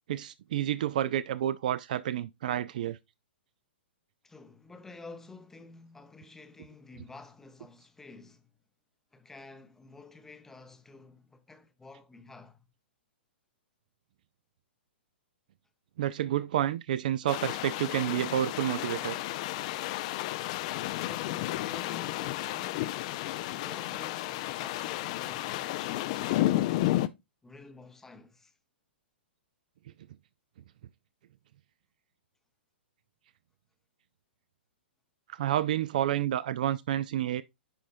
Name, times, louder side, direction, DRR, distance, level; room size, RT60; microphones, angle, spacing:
voice 1, 0.1-3.0 16.0-19.2 35.3-37.4, right 11 dB, 45° right, 0.4 m, -29 dB
voice 2, 4.2-8.6 9.1-12.7 20.9-23.0 23.5-27.1 27.4-28.5, left 3 dB, 5° left, 0.7 m, -51 dB
sound 1, 17.3-27.1, left 16 dB, 35° left, 0.4 m, -32 dB
9.9 x 4.2 x 2.5 m
figure-of-eight pair, 115°, 6 cm